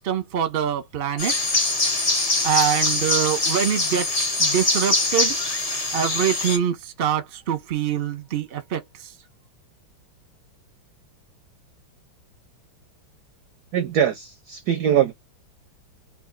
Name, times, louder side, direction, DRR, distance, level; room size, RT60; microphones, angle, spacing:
voice 1, 0.0-1.3 2.4-4.1 4.4-5.4 5.9-8.8, right 9 dB, 45° right, 0.8 m, -24 dB
sound 1, 1.2-6.6, left 2 dB, 60° left, 0.3 m, -23 dB
voice 2, 13.7-15.1, right 9 dB, 70° right, 0.9 m, -22 dB
3.5 x 2.7 x 3.9 m
omnidirectional pair, 2.3 m